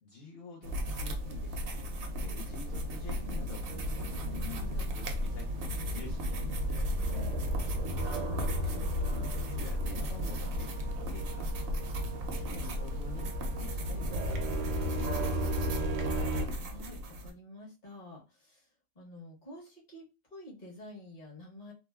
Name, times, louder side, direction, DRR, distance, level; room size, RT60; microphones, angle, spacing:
voice 1, 0.0-1.9 2.2-3.6 3.9-6.9 7.8-8.3 8.6-11.5 12.3-13.3 13.6-16.4, left 4 dB, 55° left, -3 dB, 0.7 m, -48 dB
sound 1, 0.6-17.3, equal, 60° right, 0.7 m, -36 dB
sound 2, 3.7-16.5, equal, 90° right, 1.0 m, -35 dB
voice 2, 7.0-7.4 16.6-18.7 18.9-20.0 20.3-21.7, left 1 dB, 40° left, -4 dB, 1.1 m, -49 dB
3.0 x 2.0 x 2.2 m, 0.29 s
omnidirectional pair, 1.3 m